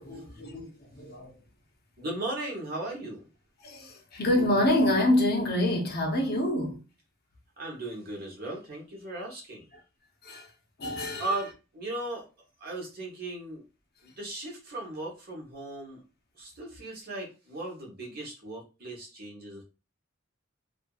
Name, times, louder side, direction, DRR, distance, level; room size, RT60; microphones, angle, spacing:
voice 1, 0.0-1.3 3.6-6.8 10.2-10.5 10.8-11.3, left 1 dB, 55° left, 0.7 m, -27 dB
voice 2, 2.0-3.3 7.6-9.7 11.2-12.3 12.6-13.6 14.0-16.0 16.3-19.6, right 2 dB, 50° right, 1.1 m, -37 dB
2.7 x 2.6 x 2.4 m
head